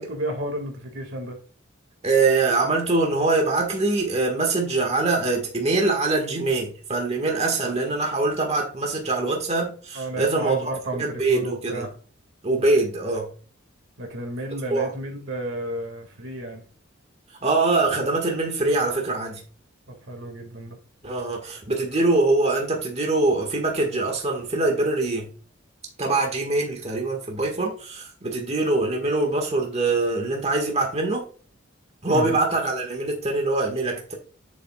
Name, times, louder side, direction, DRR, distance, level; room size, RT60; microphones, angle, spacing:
voice 1, 0.0-1.4 9.9-11.9 12.6-12.7 14.0-16.6 19.9-20.8 32.1-32.4, right 1 dB, 65° right, 2.2 m, -32 dB
voice 2, 2.0-11.9 12.4-13.3 14.7-14.9 17.4-19.4 21.0-25.3 26.0-31.3 32.0-34.1, right 3 dB, 35° right, 1.7 m, -23 dB
9.3 x 7.4 x 2.4 m
head